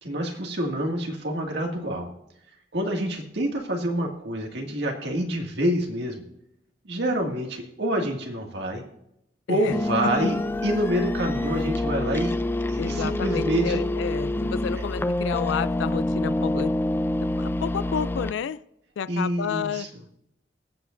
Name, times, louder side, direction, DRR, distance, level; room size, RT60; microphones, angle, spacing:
voice 1, 0.0-2.1 2.7-6.2 6.8-8.8 9.5-10.4 10.6-12.4 12.7-13.8 14.8-14.9 19.1-19.9, equal, 70° right, 1 dB, 2.0 m, -27 dB
sound 1, 9.7-18.3, left 1 dB, 10° left, 0.4 m, -27 dB
voice 2, 12.8-16.7 17.4-18.6 19.0-19.9, left 7 dB, 85° left, 16 dB, 0.4 m, -30 dB
21.5 x 8.1 x 2.5 m, 0.81 s
head